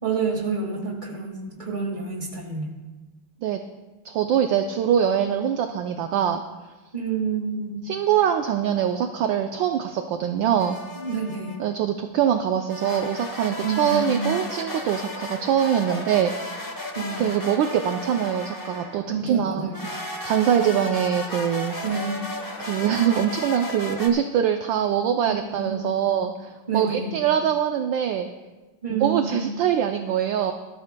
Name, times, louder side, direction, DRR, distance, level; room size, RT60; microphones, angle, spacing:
voice 1, 0.0-2.8 6.9-7.8 11.0-11.6 13.6-14.4 17.0-17.2 19.1-19.9 21.8-22.3 25.3-26.2 26.7-27.2 28.8-29.5, right 5 dB, 20° right, 0 dB, 2.0 m, -29 dB
voice 2, 4.0-6.4 7.8-10.8 11.6-16.6 17.2-19.7 20.2-21.8 22.6-28.3 28.9-30.5, right 9 dB, 70° right, 6 dB, 1.2 m, -23 dB
sound 1, 10.6-11.6 12.7-19.1 19.7-24.1, left 1 dB, 30° left, 0.3 m, -34 dB
20.0 x 13.0 x 2.2 m, 1.2 s
omnidirectional pair, 2.3 m